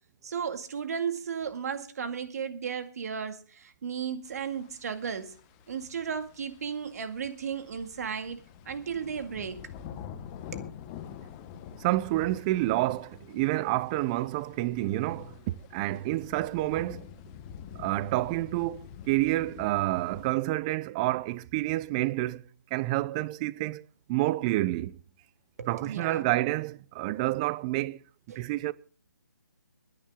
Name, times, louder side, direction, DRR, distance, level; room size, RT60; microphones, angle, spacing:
voice 1, 0.2-5.4 5.7-9.6 10.5-10.7 25.6-26.3 28.3-28.5, right 7 dB, 55° right, 2.1 m, -35 dB
sound 1, 4.2-20.3, left 8 dB, 25° left, 1.2 m, -47 dB
voice 2, 11.8-17.1 17.8-22.4 22.7-23.8 24.1-25.0 25.7-28.0 28.3-28.7, right 17 dB, 20° right, 0.6 m, -29 dB
22.0 x 10.0 x 3.7 m
hypercardioid pair, 150°, 10 cm